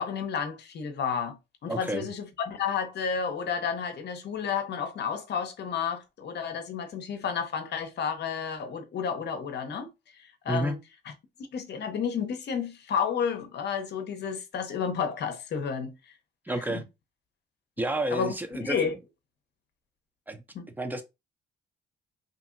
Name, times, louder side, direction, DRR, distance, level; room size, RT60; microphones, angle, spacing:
voice 1, 0.0-9.9 10.4-10.8 11.5-16.0 16.7-16.8 18.1-18.3 18.6-19.0 20.5-20.7, left 6 dB, 60° left, 0.8 m, -31 dB
voice 2, 1.7-2.1 10.5-10.8 16.5-16.8 17.8-18.8 20.3-20.4 20.8-21.0, right 1 dB, 10° right, 0.6 m, -30 dB
2.8 x 2.7 x 2.5 m
cardioid pair, 90°, 20 cm